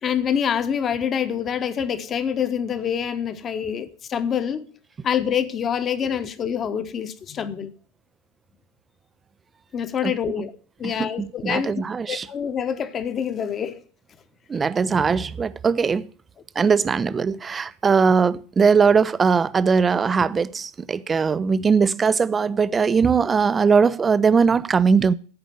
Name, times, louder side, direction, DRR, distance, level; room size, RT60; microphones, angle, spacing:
voice 1, 0.0-4.7 5.0-7.7 9.7-10.5 10.8-11.7 12.1-13.8, left 8 dB, 25° left, 1.1 m, -26 dB
voice 2, 10.8-12.3 14.5-16.1 16.6-25.1, right 5 dB, 15° right, 0.5 m, -20 dB
14.5 x 5.0 x 7.4 m
figure-of-eight pair, 90°, 0 cm